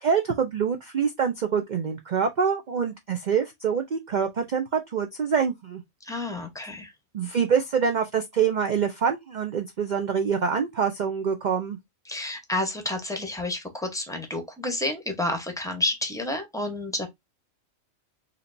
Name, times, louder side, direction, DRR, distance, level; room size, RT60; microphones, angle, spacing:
voice 1, 0.0-5.8 7.1-11.8, right 6 dB, 60° right, 0.5 m, -25 dB
voice 2, 6.0-6.9 12.1-17.1, left 2 dB, 5° left, 0.7 m, -30 dB
4.3 x 2.8 x 2.5 m
omnidirectional pair, 1.4 m